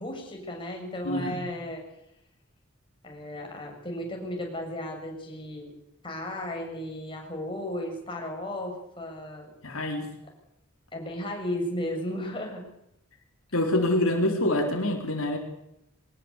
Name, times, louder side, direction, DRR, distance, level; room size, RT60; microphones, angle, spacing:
voice 1, 0.0-1.8 3.0-5.7 6.0-9.5 10.9-12.6, left 1 dB, 25° left, 1 dB, 7.5 m, -34 dB
voice 2, 1.0-1.4 9.6-10.1 13.5-15.4, left 1 dB, 80° left, 3 dB, 4.3 m, -26 dB
23.0 x 20.0 x 8.4 m, 0.79 s
head